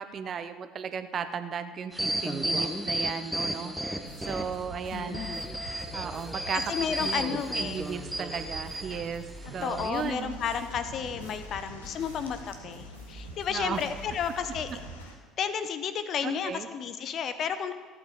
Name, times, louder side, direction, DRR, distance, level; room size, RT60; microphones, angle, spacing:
voice 1, 0.0-5.3 5.9-6.7 7.0-7.2 7.5-9.3 9.5-10.4 13.5-13.8 16.2-16.7, right 7 dB, 40° right, 10 dB, 0.7 m, -35 dB
sound 1, 1.9-4.6 5.1-9.0 9.6-9.9, right 1 dB, 5° right, 1.1 m, -33 dB
sound 2, 4.0-15.0, right 1 dB, 90° left, 3.9 m, -44 dB
voice 2, 4.9-5.4 6.7-7.8 9.6-14.7 15.4-17.7, left 7 dB, 45° left, 11 dB, 0.7 m, -32 dB
sound 3, 10.1-15.2, left 4 dB, 75° left, 1.2 m, -53 dB
14.5 x 8.6 x 4.9 m, 1.5 s
figure-of-eight pair, 60°, 0 cm